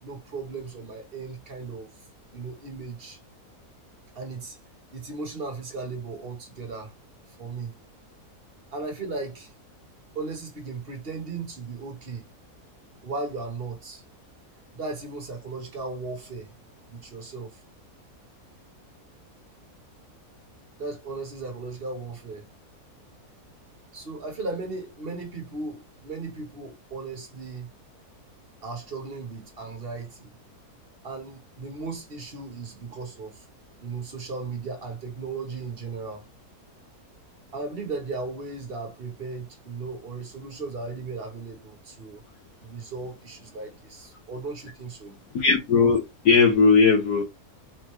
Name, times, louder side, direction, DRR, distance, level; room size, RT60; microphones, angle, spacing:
voice 1, 0.0-1.9 2.3-3.2 4.1-4.6 4.9-6.9 7.4-7.7 8.7-9.5 10.1-12.3 13.0-14.0 14.7-16.5 16.9-17.6 20.8-22.5 23.9-27.7 28.6-30.3 31.0-33.4 33.8-36.2 37.5-42.2 42.6-45.2, right 3 dB, 40° right, 1.4 m, -36 dB
voice 2, 45.3-47.2, left 5 dB, 85° left, 1.6 m, -18 dB
4.3 x 3.9 x 3.1 m
omnidirectional pair, 1.7 m